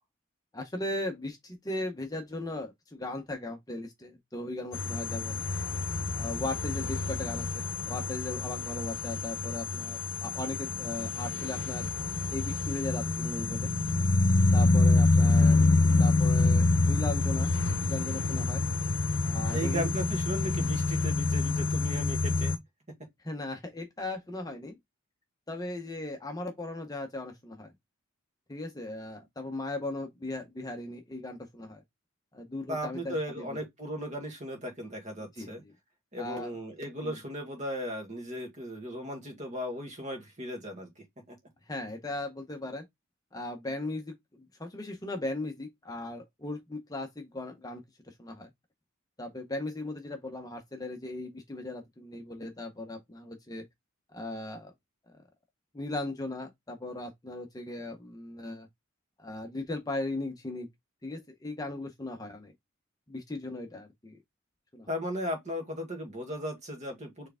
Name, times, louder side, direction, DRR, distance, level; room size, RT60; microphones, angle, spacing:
voice 1, 0.5-5.4 6.1-11.8 12.3-13.7 14.5-15.7 16.0-18.6 19.2-19.9 23.2-24.8 25.5-27.7 28.5-31.8 32.3-33.6 35.4-35.7 36.2-36.5 37.0-37.2 41.7-42.8 43.3-47.8 48.1-48.5 49.2-53.6 54.1-54.7 55.1-55.2 55.7-58.7 59.2-60.7 61.0-62.5 63.1-64.2 64.7-64.9, left 2 dB, 20° left, 0.7 m, -38 dB
sound 1, 4.7-22.6, left 3 dB, 65° left, 0.8 m, -27 dB
voice 2, 19.5-22.5 32.7-35.6 36.1-40.9 41.3-41.4 64.9-67.3, equal, 35° right, 1.8 m, -36 dB
4.6 x 3.3 x 3.5 m
head